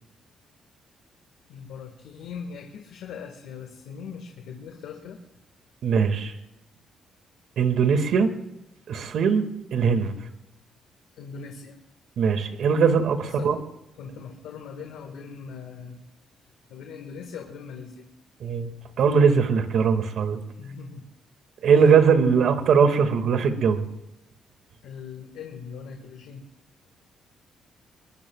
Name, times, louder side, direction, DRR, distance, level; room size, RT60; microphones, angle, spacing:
voice 1, 1.5-5.2 11.2-11.8 13.2-13.5 14.0-16.0 16.7-18.0 20.6-21.1 22.4-22.5 24.8-26.4, left 6 dB, 85° left, 3 dB, 1.8 m, -40 dB
voice 2, 5.8-6.3 7.6-8.3 8.9-9.4 9.7-10.1 12.2-13.6 18.4-18.7 19.0-20.4 21.6-23.8, right 6 dB, 70° right, 7 dB, 2.1 m, -20 dB
23.5 x 22.0 x 2.4 m, 0.92 s
cardioid pair, 90°, 0 cm